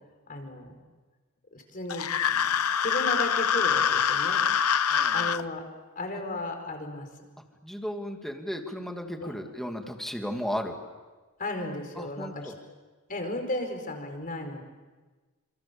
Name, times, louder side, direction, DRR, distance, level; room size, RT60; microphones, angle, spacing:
voice 1, 0.3-0.7 1.5-4.4 5.1-5.6 5.9-7.1 9.2-9.3 11.4-12.5 13.1-14.6, left 1 dB, 40° left, 4 dB, 5.0 m, -34 dB
sound 1, 1.9-5.4, left 8 dB, 75° left, 0.8 m, -25 dB
voice 2, 4.9-5.4 7.6-10.7 12.0-12.5, equal, ahead, 3 dB, 2.5 m, -35 dB
29.0 x 27.5 x 7.1 m, 1.3 s
head